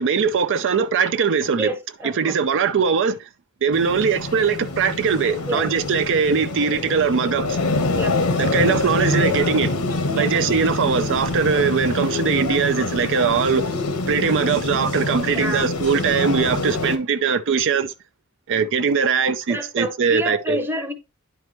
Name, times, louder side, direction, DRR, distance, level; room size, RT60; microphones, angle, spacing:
voice 1, 0.0-1.7 2.0-3.2 3.6-7.6 8.4-9.7 10.2-13.7 14.1-17.9 18.5-20.6, right 6 dB, 60° right, 0.5 m, -21 dB
voice 2, 1.5-2.4 5.5-5.7 7.9-8.2 10.1-10.4 15.3-15.7 19.5-20.9, equal, 10° right, 0.8 m, -28 dB
sound 1, 3.7-17.0, left 2 dB, 80° left, 1.2 m, -25 dB
10.5 x 4.7 x 3.0 m
head